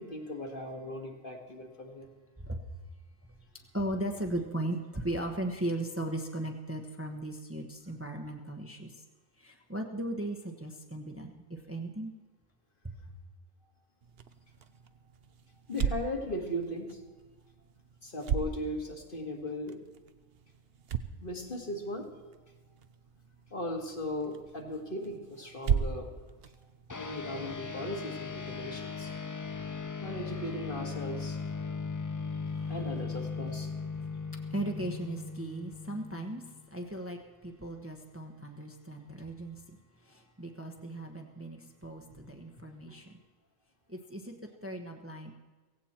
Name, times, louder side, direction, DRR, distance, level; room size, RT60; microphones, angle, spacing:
voice 1, 0.0-2.1 15.7-17.0 18.0-19.8 21.2-22.1 23.5-26.1 27.0-29.1 30.0-31.4 32.7-33.7, left 1 dB, 50° left, 2 dB, 2.1 m, -37 dB
voice 2, 2.4-2.7 3.7-9.0 9.4-12.1 12.8-13.1 32.6-32.7 33.9-43.2 43.9-45.3, right 1 dB, 10° right, 3 dB, 1.0 m, -37 dB
sound 1, 14.0-27.6, right 7 dB, 60° right, 0.9 m, -38 dB
sound 2, 26.9-36.6, left 5 dB, 25° left, 0.5 m, -38 dB
16.5 x 16.5 x 4.4 m, 1.3 s
omnidirectional pair, 1.2 m